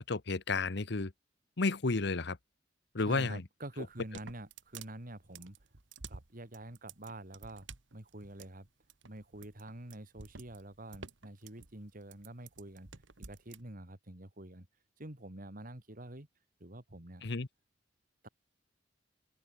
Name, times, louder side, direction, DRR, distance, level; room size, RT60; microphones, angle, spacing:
voice 1, 0.1-1.1 1.6-2.4 2.9-3.4 17.2-17.5, left 3 dB, 65° left, 1.1 m, -32 dB
voice 2, 3.1-5.6 6.1-7.7 7.9-8.7 9.1-12.9 13.2-14.7 15.0-16.3 16.6-17.2 18.2-18.3, right 1 dB, 50° right, 2.9 m, -47 dB
sound 1, 3.9-13.6, right 5 dB, 85° right, 1.8 m, -51 dB
open air
head